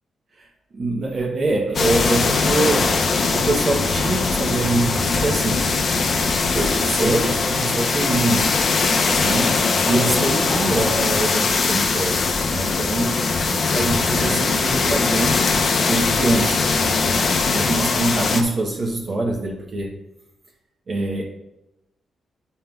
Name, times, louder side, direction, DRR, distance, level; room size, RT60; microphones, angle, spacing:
voice 1, 0.7-2.9 3.3-5.7 6.5-8.6 9.2-9.6 9.9-12.2 12.5-15.4 15.9-16.7 17.5-19.9 20.9-21.2, right 2 dB, 40° right, -2 dB, 0.8 m, -24 dB
sound 1, 1.7-18.4, left 4 dB, 45° left, 0.6 m, -21 dB
8.9 x 5.5 x 2.3 m, 0.93 s
wide cardioid pair, 170°, 0 cm